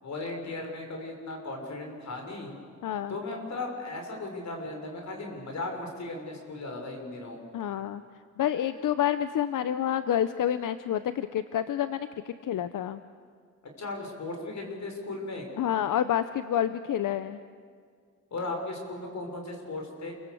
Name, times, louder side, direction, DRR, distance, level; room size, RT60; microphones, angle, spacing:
voice 1, 0.0-2.5 3.1-7.4 13.8-15.5 18.3-20.1, left 2 dB, 60° left, 3 dB, 5.8 m, -36 dB
voice 2, 2.8-3.1 7.5-8.0 8.4-13.0 15.6-17.4, left 10 dB, 90° left, 12 dB, 0.8 m, -28 dB
29.0 x 23.5 x 7.9 m, 2.1 s
wide cardioid pair, 115°, 31 cm